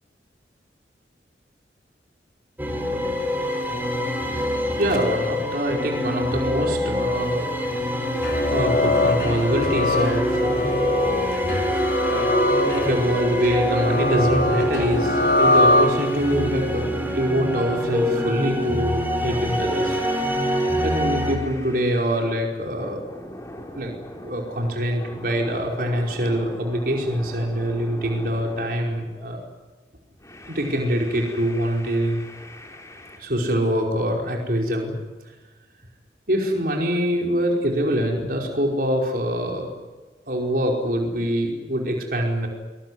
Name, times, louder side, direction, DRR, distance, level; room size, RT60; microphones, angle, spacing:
sound 1, 2.6-21.4, equal, 10° right, 4.3 m, -25 dB
voice 1, 4.2-7.5 8.1-12.4 12.7-20.0 20.4-20.5 20.8-23.0 23.7-23.9 24.2-29.4 30.5-32.2 33.2-34.9 36.3-39.7 40.3-42.5, equal, 50° right, 0 dB, 5.1 m, -25 dB
sound 2, 8.1-16.4, left 2 dB, 60° left, 4.4 m, -23 dB
sound 3, 19.2-22.4 22.8-29.4 30.2-33.2, left 1 dB, 15° left, 3.8 m, -41 dB
24.0 x 22.5 x 9.6 m, 1.2 s
head